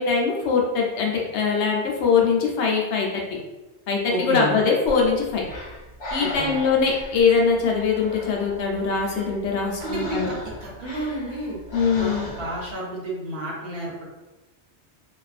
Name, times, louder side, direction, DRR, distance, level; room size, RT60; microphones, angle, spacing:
voice 1, 0.0-3.2 3.9-5.4 6.1-10.3 11.7-12.3, left 5 dB, 75° left, 0 dB, 0.9 m, -22 dB
voice 2, 4.1-4.6 6.2-6.6 9.8-10.3 10.6-11.6 12.0-14.1, right 1 dB, 60° right, -4 dB, 0.9 m, -31 dB
Breathing, 4.9-12.7, left 1 dB, 50° left, 0.6 m, -38 dB
2.5 x 2.3 x 2.4 m, 1.1 s
omnidirectional pair, 1.2 m